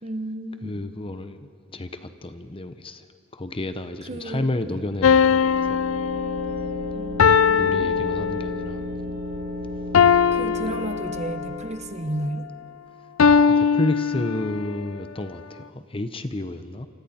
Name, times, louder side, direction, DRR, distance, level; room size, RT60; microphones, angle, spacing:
voice 1, 0.0-0.7 4.1-4.5 6.9-8.0 10.3-12.5, right 1 dB, 35° right, 8 dB, 1.1 m, -33 dB
voice 2, 0.6-3.0 3.3-5.8 7.6-8.8 13.4-16.9, left 1 dB, 25° left, 9 dB, 0.9 m, -31 dB
sound 1, 4.6-12.3, left 1 dB, 50° right, 2.4 m, -34 dB
sound 2, 5.0-8.8 9.9-11.5 13.2-14.7, left 6 dB, 70° left, 0.5 m, -20 dB
27.0 x 26.0 x 4.4 m, 2.5 s
head